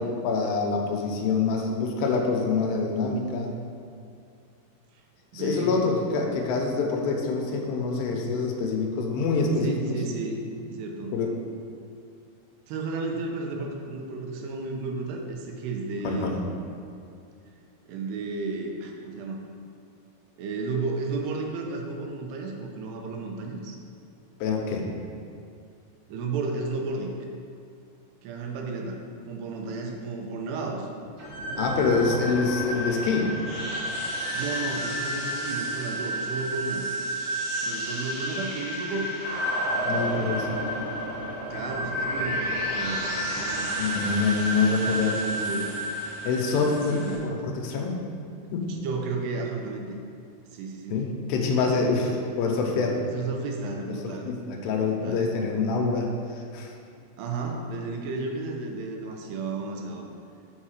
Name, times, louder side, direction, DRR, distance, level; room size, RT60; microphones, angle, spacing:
voice 1, 0.0-3.5 5.3-9.8 11.1-11.3 16.0-16.3 24.4-24.9 31.6-33.3 39.9-40.5 43.8-45.3 46.2-47.9 48.5-48.7 50.9-53.0 54.2-56.7, left 4 dB, 85° left, 1 dB, 3.1 m, -26 dB
voice 2, 5.3-5.9 9.6-11.2 12.7-16.3 17.9-19.4 20.4-23.8 26.1-27.2 28.2-29.0 29.3-30.9 34.3-36.9 37.6-39.1 41.5-43.7 44.9-45.8 46.9-47.2 48.7-50.0 50.5-51.0 52.1-52.3 53.1-54.3 54.9-55.2 55.8-55.9 57.2-60.1, right 3 dB, 85° right, 1 dB, 2.8 m, -33 dB
sound 1, 31.2-47.1, equal, 35° right, 2.5 m, -30 dB
6.9 x 5.5 x 6.5 m, 2.4 s
omnidirectional pair, 4.7 m